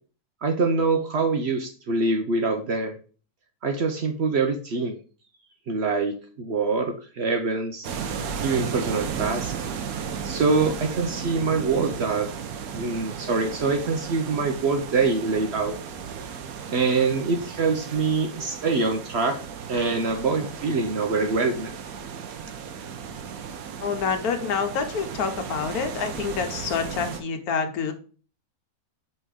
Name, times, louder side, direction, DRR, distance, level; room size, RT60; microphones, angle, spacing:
voice 1, 0.4-3.0 3.6-5.0 5.7-7.9 8.4-9.6 10.2-12.3 12.7-15.8 16.7-19.4 19.7-21.7, right 4 dB, 55° right, 5 dB, 0.8 m, -24 dB
sound 1, 7.8-27.2, right 7 dB, 70° right, 1.2 m, -35 dB
voice 2, 23.8-27.9, left 6 dB, 75° left, 7 dB, 1.3 m, -27 dB
5.3 x 3.7 x 4.8 m, 0.39 s
omnidirectional pair, 1.6 m